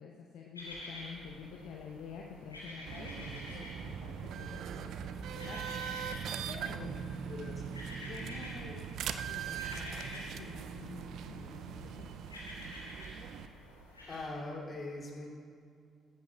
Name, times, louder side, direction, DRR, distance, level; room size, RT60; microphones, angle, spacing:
voice 1, 0.0-5.9 6.5-7.0 8.1-8.9 9.2-12.1, left 6 dB, 60° left, 0 dB, 0.7 m, -49 dB
sound 1, 0.5-14.2, left 1 dB, 90° left, 1.6 m, -49 dB
sound 2, 2.9-13.5, right 8 dB, 60° right, 0.4 m, -41 dB
voice 2, 6.8-7.8 14.1-15.3, left 2 dB, 35° left, -2 dB, 2.7 m, -42 dB
14.5 x 14.0 x 2.3 m, 2.3 s
figure-of-eight pair, 45°, 0 cm